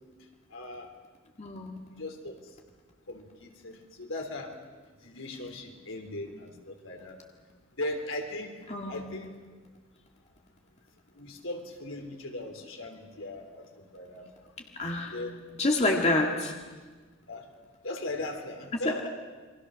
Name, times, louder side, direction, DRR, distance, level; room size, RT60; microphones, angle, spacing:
voice 1, 0.5-0.9 2.0-2.4 3.1-4.5 5.0-7.2 7.8-8.5 8.9-9.3 11.2-14.3 15.1-15.4 17.3-17.5 17.8-19.1, left 1 dB, 75° left, 3 dB, 3.6 m, -38 dB
voice 2, 1.4-1.9 8.7-9.3 14.8-15.2 15.6-16.5 18.9-19.0, left 2 dB, 30° left, 1 dB, 1.8 m, -28 dB
29.0 x 23.5 x 6.4 m, 1.4 s
head